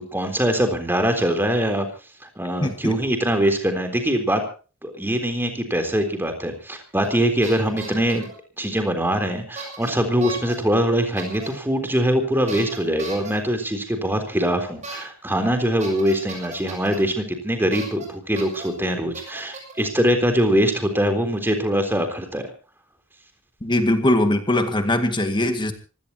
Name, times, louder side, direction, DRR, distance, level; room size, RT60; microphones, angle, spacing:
voice 1, 0.1-1.9 2.4-4.4 4.8-8.3 8.6-22.5, equal, 10° right, 6 dB, 3.7 m, -22 dB
voice 2, 2.6-3.0 23.6-25.7, left 1 dB, 25° left, 7 dB, 2.0 m, -21 dB
sound 1, 7.0-7.2 7.4-8.3 9.6-9.9 10.2-10.6 11.2-11.5 12.5-13.3 14.8-15.0 15.3-15.4 15.8-17.0 17.7-18.1 18.4-18.7 19.1-19.8, right 4 dB, 35° right, 7.7 m, -36 dB
25.5 x 17.0 x 2.9 m, 0.36 s
head